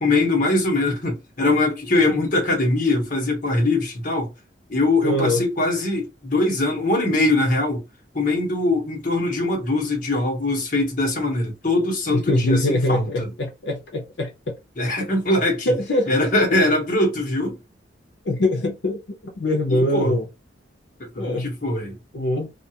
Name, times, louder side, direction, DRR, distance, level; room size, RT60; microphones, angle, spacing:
voice 1, 0.0-4.3 4.7-7.8 8.1-13.3 14.8-15.7 16.1-17.6 19.7-20.1 21.0-22.0, left 2 dB, 45° left, 1.0 m, -22 dB
voice 2, 5.0-5.4 12.1-14.5 15.7-16.3 18.2-20.3 21.2-21.5 22.1-22.5, left 1 dB, 75° left, 0.6 m, -23 dB
2.4 x 2.4 x 2.8 m
head